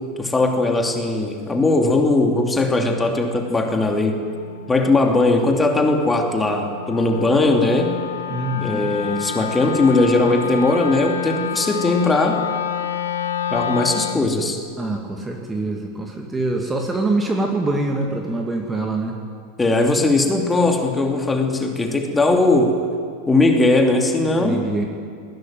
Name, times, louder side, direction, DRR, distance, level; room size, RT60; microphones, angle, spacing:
voice 1, 0.2-4.2 4.7-7.9 8.6-12.4 13.5-14.6 19.6-22.8 23.3-24.6, left 2 dB, 10° left, 3 dB, 2.8 m, -19 dB
Wind instrument woodwind instrument, 2.7-14.3, left 8 dB, 65° left, 1.3 m, -30 dB
voice 2, 8.3-8.9 14.8-19.2 24.2-24.9, right 2 dB, 10° right, 2 dB, 2.3 m, -24 dB
21.0 x 17.0 x 9.3 m, 2.2 s
figure-of-eight pair, 90°, 0 cm